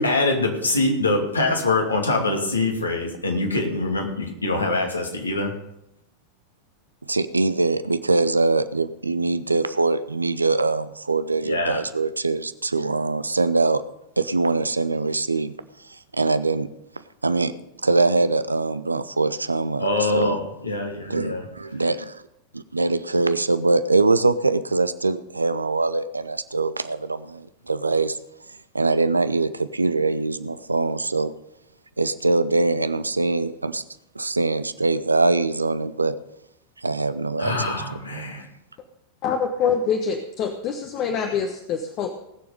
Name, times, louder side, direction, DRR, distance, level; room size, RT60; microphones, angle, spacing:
voice 1, 0.0-5.5 11.4-11.8 19.8-21.4 37.4-38.5, left 2 dB, 80° left, 1 dB, 2.5 m, -24 dB
voice 2, 7.0-13.8 14.2-15.5 15.9-16.7 17.2-17.5 17.8-20.4 21.1-22.2 22.5-28.2 28.7-31.3 32.0-33.8 34.1-36.1 36.8-37.8, right 3 dB, 80° right, 14 dB, 0.6 m, -23 dB
voice 3, 39.2-42.1, left 6 dB, 35° left, 5 dB, 1.1 m, -25 dB
19.0 x 7.1 x 5.2 m, 0.84 s
figure-of-eight pair, 90°, 0 cm